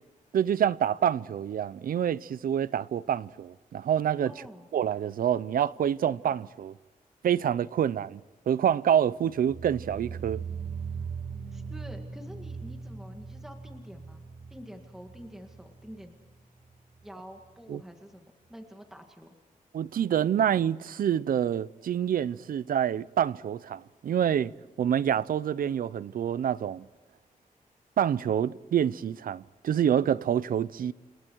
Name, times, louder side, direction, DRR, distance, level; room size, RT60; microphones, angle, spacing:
voice 1, 0.3-4.3 4.7-6.7 7.2-8.2 8.5-10.4 17.7-17.8 19.7-24.5 24.8-26.9 28.0-30.9, right 9 dB, 75° right, 0.7 m, -27 dB
voice 2, 4.2-4.7 11.5-14.2 14.5-16.1 17.0-19.4, equal, 5° right, 2.0 m, -47 dB
sound 1, 9.3-16.3 16.6-17.1 17.4-17.5, right 5 dB, 55° right, 4.6 m, -40 dB
29.5 x 28.0 x 4.7 m
wide cardioid pair, 170°, 15 cm